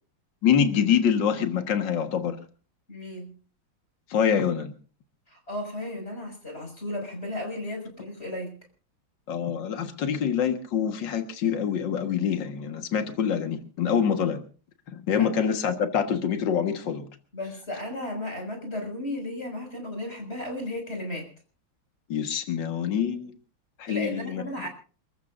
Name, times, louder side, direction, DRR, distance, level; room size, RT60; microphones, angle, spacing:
voice 1, 0.4-2.4 4.1-4.7 9.3-14.4 14.9-17.1 22.1-23.3 23.8-24.4, left 8 dB, 65° left, 6 dB, 2.3 m, -25 dB
voice 2, 2.9-3.3 5.3-8.5 15.1-15.3 17.3-21.3 23.9-24.7, left 1 dB, 30° left, 3 dB, 6.6 m, -34 dB
30.0 x 14.0 x 2.6 m, 0.38 s
omnidirectional pair, 2.1 m